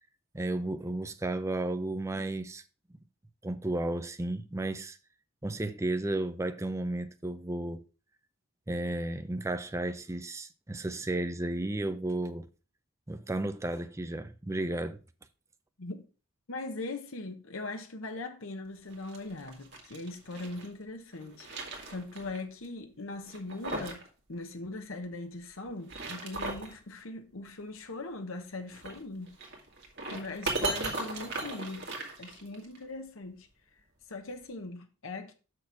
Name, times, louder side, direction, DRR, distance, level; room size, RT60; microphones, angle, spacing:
voice 1, 0.3-2.6 3.4-5.0 5.4-7.8 8.7-12.5 13.1-15.0, right 1 dB, 15° right, 0.5 m, -33 dB
voice 2, 16.5-21.5 21.9-29.4 30.1-31.9 32.2-33.5 34.1-35.3, left 2 dB, 70° left, 1.1 m, -40 dB
sound 1, 18.9-20.7 21.1-22.4 22.6-22.7 23.2-24.1 24.3-24.4 25.7-26.8 28.7-32.8, right 2 dB, 55° right, 1.9 m, -37 dB
6.5 x 6.1 x 4.8 m
head